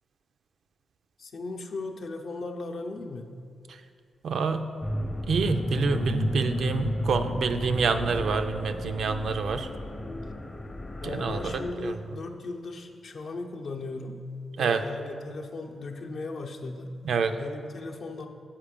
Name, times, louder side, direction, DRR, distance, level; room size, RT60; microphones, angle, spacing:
voice 1, 1.2-3.4 11.0-14.2 14.6-16.9 17.4-18.3, left 3 dB, 65° left, 3 dB, 0.6 m, -37 dB
voice 2, 4.2-4.6 5.3-9.7 11.0-11.5 11.8-11.9 14.6-14.8 17.0-17.3, right 5 dB, 75° right, 7 dB, 0.4 m, -27 dB
sound 1, 4.8-11.7, left 1 dB, 30° left, 0.6 m, -32 dB
7.2 x 4.8 x 5.1 m, 2.3 s
cardioid pair, 65°, 0 cm